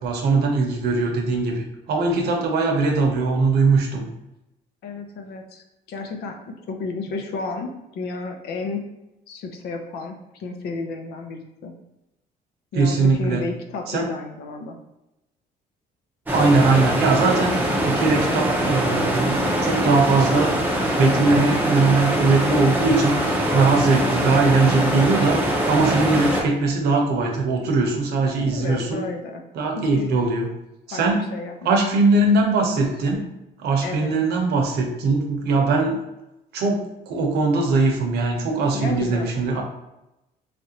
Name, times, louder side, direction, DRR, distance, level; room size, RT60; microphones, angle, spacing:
voice 1, 0.0-4.0 12.7-13.4 13.9-14.1 16.3-20.5 20.8-29.0 29.5-30.5 30.9-31.2 31.6-33.2 33.6-35.9 36.5-39.6, right 3 dB, 70° right, 1 dB, 0.8 m, -20 dB
voice 2, 4.8-8.9 9.3-11.8 12.7-14.8 28.2-29.5 29.8-30.2 30.9-31.8 33.8-34.1 38.7-39.5, left 3 dB, 70° left, 4 dB, 0.6 m, -32 dB
sound 1, 16.3-26.4, equal, 10° right, 0.6 m, -22 dB
3.2 x 2.5 x 2.8 m, 0.92 s
cardioid pair, 110°, 17 cm